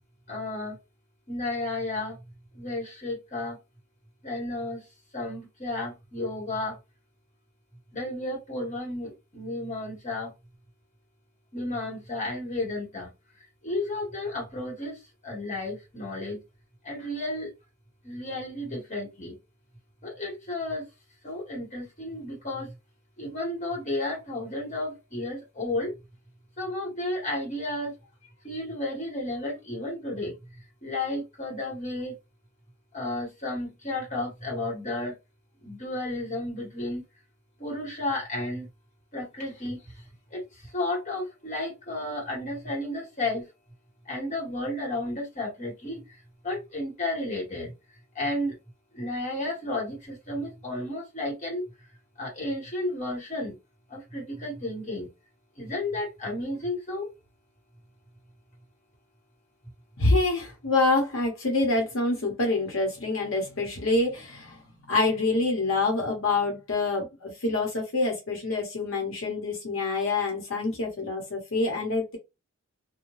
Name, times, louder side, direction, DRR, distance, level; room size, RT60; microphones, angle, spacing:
voice 1, 0.3-0.8 1.3-2.2 2.5-3.6 4.2-4.8 5.1-6.8 7.9-10.3 11.5-13.1 13.6-15.0 15.2-16.4 16.8-17.5 18.0-19.3 20.0-20.8 21.2-22.7 23.2-25.9 26.6-27.9 28.4-30.3 30.8-32.1 32.9-35.1 35.6-37.0 37.6-38.7 39.1-39.8 40.3-40.4 40.7-43.5 44.0-46.0 46.4-47.7 48.1-48.5 48.9-51.6 52.2-53.5 53.9-55.1 55.6-57.1, left 2 dB, 40° left, 1.5 m, -32 dB
voice 2, 60.0-64.6 64.9-72.2, left 3 dB, 85° left, 0.9 m, -26 dB
2.6 x 2.2 x 3.1 m
head